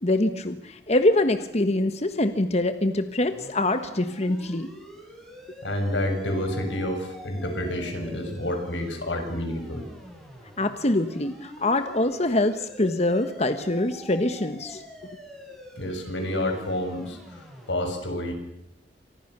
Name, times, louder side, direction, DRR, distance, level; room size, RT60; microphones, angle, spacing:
voice 1, 0.0-4.7 10.6-14.8, left 1 dB, 35° left, 9 dB, 1.3 m, -24 dB
sound 1, 3.3-17.7, equal, ahead, 7.6 m, -46 dB
voice 2, 5.6-9.8 15.8-18.3, left 1 dB, 85° left, 5 dB, 7.0 m, -29 dB
29.5 x 26.0 x 6.9 m, 0.81 s
head